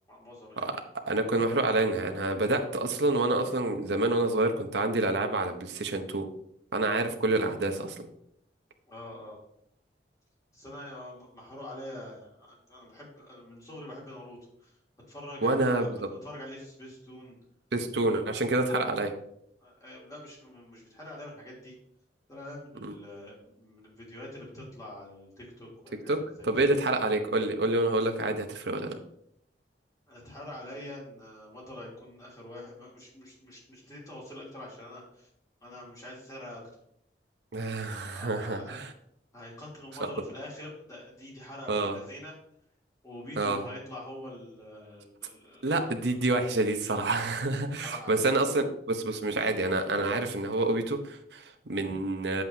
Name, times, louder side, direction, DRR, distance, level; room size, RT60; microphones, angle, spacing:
voice 1, 0.1-0.7 8.8-9.4 10.5-14.8 15.1-15.9 16.2-17.4 18.0-18.2 18.6-18.7 19.6-21.7 22.3-26.5 30.1-35.3 35.6-36.6 37.9-38.8 39.3-42.3 43.0-45.9 47.8-48.3, left 1 dB, 20° left, -4 dB, 3.1 m, -45 dB
voice 2, 1.1-6.2 6.7-8.1 15.4-16.0 17.7-19.1 22.8-22.9 26.1-26.2 26.4-29.0 37.5-38.9 40.0-40.1 41.7-42.0 43.4-43.6 45.6-52.4, right 2 dB, 75° right, 5 dB, 0.9 m, -28 dB
9.1 x 7.7 x 2.8 m, 0.71 s
head